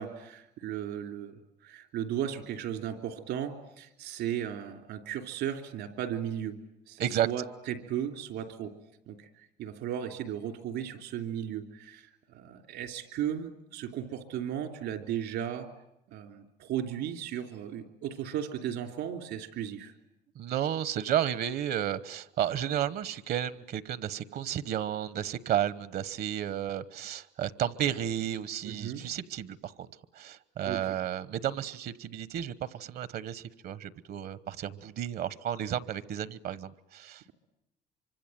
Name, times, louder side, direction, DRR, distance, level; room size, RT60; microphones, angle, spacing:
voice 1, 0.0-6.5 6.9-8.7 9.1-9.3 9.6-15.7 16.1-19.9 28.6-29.0 30.7-31.0, right 10 dB, 85° right, 6 dB, 3.3 m, -36 dB
voice 2, 20.3-29.9 30.1-37.3, right 10 dB, 65° right, 16 dB, 1.1 m, -32 dB
25.5 x 25.0 x 9.2 m, 0.83 s
cardioid pair, 110°, 17 cm